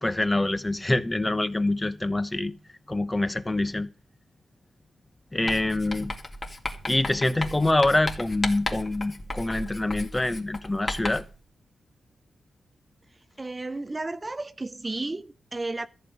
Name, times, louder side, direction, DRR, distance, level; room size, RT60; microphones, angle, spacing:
voice 1, 0.0-2.5 2.9-3.9 5.3-6.1 6.9-11.2, left 2 dB, 15° left, 0.9 m, -25 dB
Writing, 5.5-11.4, left 2 dB, 30° left, 2.2 m, -35 dB
voice 2, 13.4-15.9, right 2 dB, 20° right, 0.6 m, -33 dB
14.0 x 5.5 x 9.4 m
wide cardioid pair, 120°, 0 cm